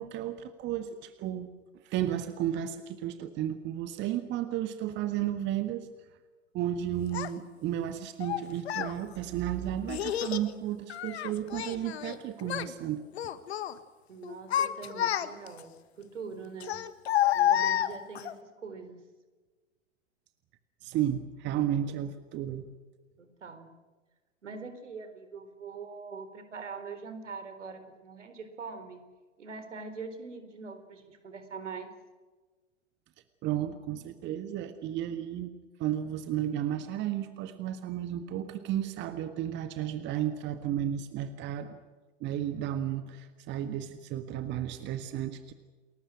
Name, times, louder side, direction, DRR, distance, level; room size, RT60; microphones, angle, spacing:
voice 1, 0.0-1.5 1.8-5.9 6.5-13.0 20.8-22.6 33.4-35.5 35.8-41.8 42.2-45.5, right 11 dB, 30° right, 10 dB, 1.6 m, -33 dB
Child speech kid speaking, 7.1-7.3 8.2-8.9 9.9-10.5 10.9-12.2 12.4-12.7 13.1-13.7 14.2-15.6 16.6-18.3, left 11 dB, 55° left, 1.6 m, -29 dB
voice 2, 14.1-16.8 17.3-19.0 23.2-23.7 24.4-29.0 29.4-31.9, right 5 dB, 70° right, 10 dB, 4.3 m, -43 dB
29.5 x 21.0 x 6.3 m, 1.3 s
figure-of-eight pair, 100°, 37 cm